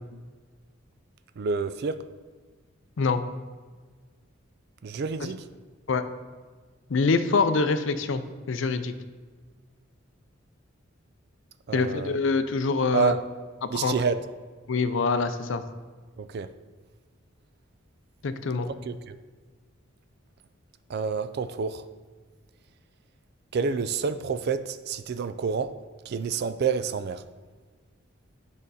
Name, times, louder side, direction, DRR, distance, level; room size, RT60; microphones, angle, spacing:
voice 1, 1.4-2.0 4.8-5.5 11.7-12.2 12.9-13.2 13.7-14.2 16.2-16.5 18.7-19.2 20.9-21.9 23.5-25.7 26.1-27.2, right 5 dB, 50° right, 13 dB, 0.3 m, -28 dB
voice 2, 6.9-8.2 8.5-8.9 11.7-13.1 13.6-14.0 14.7-15.6 18.2-18.7, left 4 dB, 65° left, 11 dB, 0.5 m, -25 dB
8.8 x 5.2 x 4.1 m, 1.4 s
head